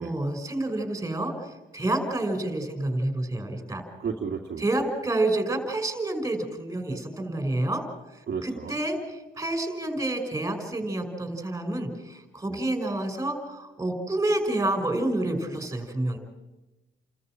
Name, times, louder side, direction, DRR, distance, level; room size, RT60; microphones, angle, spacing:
voice 1, 0.0-3.8 4.6-7.8 8.4-16.2, right 1 dB, 15° right, 6 dB, 5.5 m, -28 dB
voice 2, 4.0-4.7 8.3-8.8 12.5-12.6, right 6 dB, 55° right, 0 dB, 2.1 m, -33 dB
29.5 x 14.0 x 7.6 m, 1.1 s
cardioid pair, 90°, 20 cm